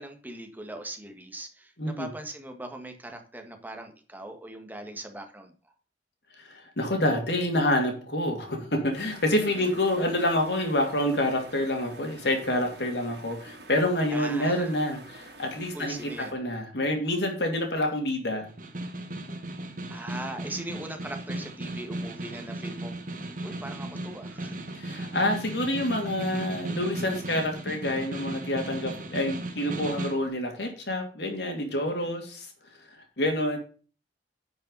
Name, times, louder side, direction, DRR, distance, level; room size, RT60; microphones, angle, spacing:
voice 1, 0.0-5.5 9.4-9.7 14.1-14.7 15.7-16.4 19.9-22.9 23.4-24.6, right 1 dB, 10° right, 5 dB, 1.6 m, -40 dB
voice 2, 1.8-2.1 6.4-18.5 24.7-32.5 33.2-33.6, left 1 dB, 70° left, 3 dB, 2.6 m, -27 dB
sound 1, 8.9-16.3, right 2 dB, 75° right, 3.2 m, -48 dB
Snare drum, 18.4-30.3, right 1 dB, 50° right, 1.8 m, -36 dB
10.0 x 5.4 x 5.4 m, 0.37 s
head